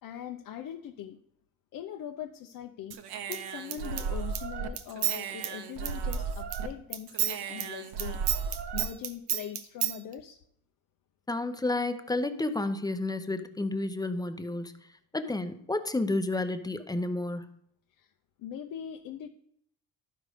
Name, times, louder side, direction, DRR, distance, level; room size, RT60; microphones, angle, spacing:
voice 1, 0.0-1.2 1.7-3.0 3.3-10.4 18.0-18.1 18.4-19.3, left 9 dB, 60° left, 4 dB, 0.7 m, -41 dB
Human voice / Scissors, 2.9-6.7 6.9-10.0, right 8 dB, 85° right, 1.0 m, -32 dB
voice 2, 11.3-14.7 15.1-17.5, left 2 dB, 10° left, 9 dB, 0.7 m, -31 dB
12.0 x 5.0 x 5.0 m, 0.68 s
cardioid pair, 115°, 38 cm